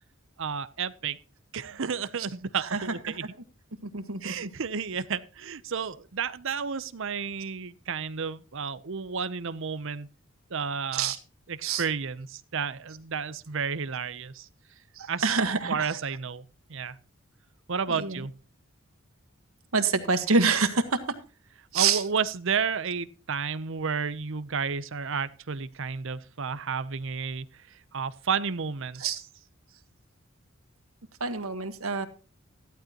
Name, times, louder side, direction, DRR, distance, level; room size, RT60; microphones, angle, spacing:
voice 1, 0.4-1.2 1.5-3.2 4.2-10.1 10.5-11.1 11.5-14.5 15.1-15.4 15.7-16.4 16.7-17.0 17.7-18.3 21.7-27.5 27.9-29.2, right 6 dB, 65° right, 0.7 m, -31 dB
voice 2, 2.6-3.2 3.8-4.5 10.9-11.2 11.6-11.8 14.9-16.0 17.9-18.3 19.7-21.2 21.7-22.0 29.0-29.2 31.2-32.1, right 4 dB, 90° right, 1.5 m, -27 dB
14.5 x 12.0 x 3.0 m
head